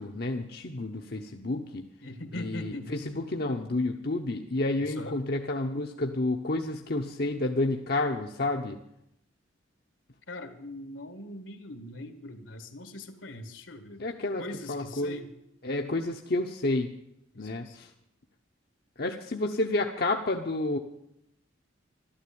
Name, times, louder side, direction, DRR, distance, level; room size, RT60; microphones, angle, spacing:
voice 1, 0.0-1.8 2.3-8.8 14.0-15.2 15.6-16.9 17.4-17.9 19.0-20.8, left 2 dB, 50° left, 3 dB, 0.9 m, -30 dB
voice 2, 2.0-2.9 4.8-5.1 10.3-14.0 14.4-15.3 17.3-17.8, left 1 dB, 75° left, 9 dB, 1.8 m, -41 dB
13.0 x 12.5 x 8.7 m, 0.79 s
head